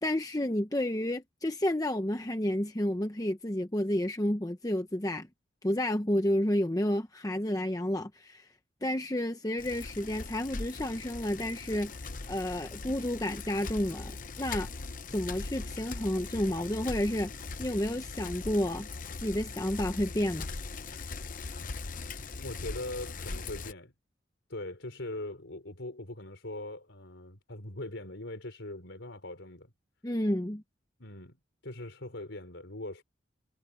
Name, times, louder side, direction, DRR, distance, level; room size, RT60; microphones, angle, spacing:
voice 1, 0.0-5.3 5.6-8.5 8.8-11.9 12.3-14.7 15.1-17.3 17.6-18.9 19.2-20.5 30.0-30.6, left 1 dB, 20° left, 0.8 m, -30 dB
Bicycle, 9.6-23.7, left 3 dB, 45° left, 0.8 m, -40 dB
voice 2, 22.3-23.9 24.5-29.7 31.0-31.4 31.6-33.0, left 2 dB, 80° left, 3.8 m, -41 dB
head